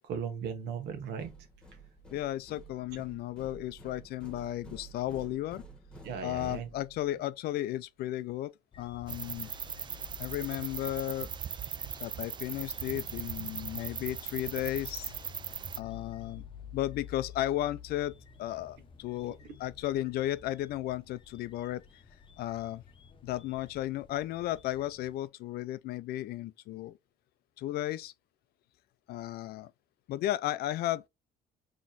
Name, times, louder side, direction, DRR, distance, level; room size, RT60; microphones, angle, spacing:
voice 1, 0.0-1.3 6.0-6.7 19.4-19.5, right 7 dB, 85° right, 1.2 m, -37 dB
sound 1, 1.2-7.2, right 2 dB, 5° left, 1.2 m, -51 dB
voice 2, 2.1-5.6 6.2-9.5 10.2-11.3 12.0-15.1 15.8-16.4 16.7-21.8 22.4-22.8 23.2-27.0 27.6-28.1 29.1-29.7 30.1-31.1, left 14 dB, 70° left, 0.4 m, -34 dB
sound 2, 8.7-25.2, left 7 dB, 30° left, 0.7 m, -51 dB
sound 3, 9.1-15.8, right 7 dB, 25° right, 0.3 m, -39 dB
4.1 x 3.0 x 2.5 m
cardioid pair, 110°, 17 cm